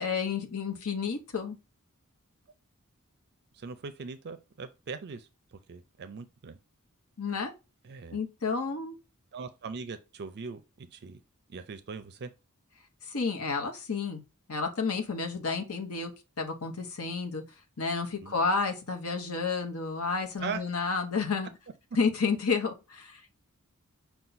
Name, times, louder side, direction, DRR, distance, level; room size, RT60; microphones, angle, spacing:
voice 1, 0.0-1.6 7.2-7.5 8.1-8.9 13.1-14.2 14.5-16.1 16.4-17.4 17.8-21.5 22.0-23.2, left 4 dB, 70° left, 1.0 m, -30 dB
voice 2, 3.5-6.6 7.8-8.2 9.3-11.2 11.5-12.3 18.2-18.3 20.4-20.6, right 5 dB, 50° right, 0.4 m, -40 dB
5.6 x 2.3 x 3.9 m
head